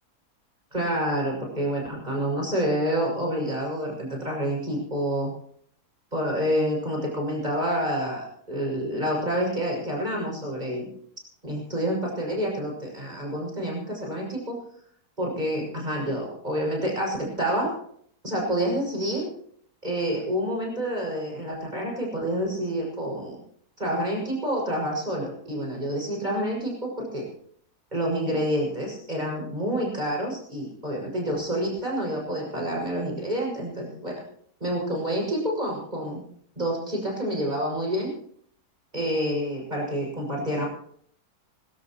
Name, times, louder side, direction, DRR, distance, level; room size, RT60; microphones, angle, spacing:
voice 1, 0.7-5.3 6.1-10.9 11.4-14.6 15.2-17.7 18.2-19.3 19.8-23.4 23.8-27.2 27.9-34.2 34.6-36.2 36.6-38.1 38.9-40.7, equal, 25° right, -2 dB, 6.6 m, -28 dB
25.0 x 15.0 x 3.1 m, 0.63 s
omnidirectional pair, 1.7 m